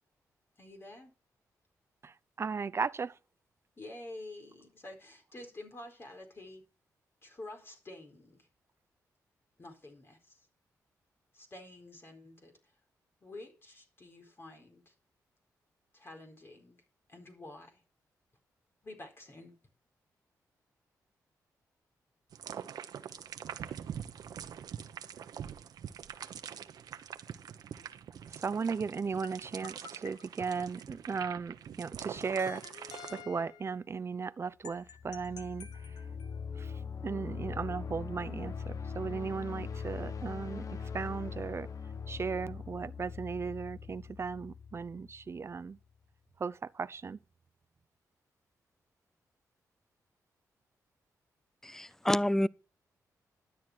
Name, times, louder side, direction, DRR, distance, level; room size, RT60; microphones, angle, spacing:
voice 1, 0.6-1.1 3.8-6.6 7.2-8.5 9.6-10.5 11.3-12.7 13.2-14.9 15.9-16.8 17.1-17.8 18.8-19.6, left 2 dB, 35° left, 4.5 m, -49 dB
voice 2, 2.4-3.1 28.4-35.7 36.6-36.7 37.0-40.6 40.9-41.7 42.1-45.8 46.4-47.2, right 5 dB, 40° right, 0.7 m, -36 dB
sound 1, 22.3-33.2, right 8 dB, 75° right, 1.1 m, -44 dB
sound 2, 29.2-31.1 32.1-33.8 34.6-36.4, left 7 dB, 85° left, 1.3 m, -50 dB
sound 3, 34.8-45.6, left 6 dB, 55° left, 1.4 m, -41 dB
voice 3, 51.6-52.5, left 1 dB, 5° left, 0.4 m, -28 dB
12.5 x 9.3 x 4.6 m
cardioid pair, 70°, 7 cm